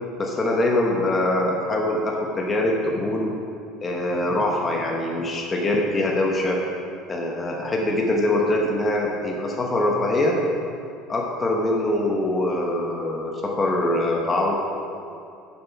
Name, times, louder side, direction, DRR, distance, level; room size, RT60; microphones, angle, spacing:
voice 1, 0.2-3.3 3.8-6.6 7.1-10.4 11.1-14.7, left 1 dB, 20° left, -1 dB, 0.9 m, -23 dB
7.5 x 7.0 x 5.7 m, 2.5 s
cardioid pair, 155°, 0 cm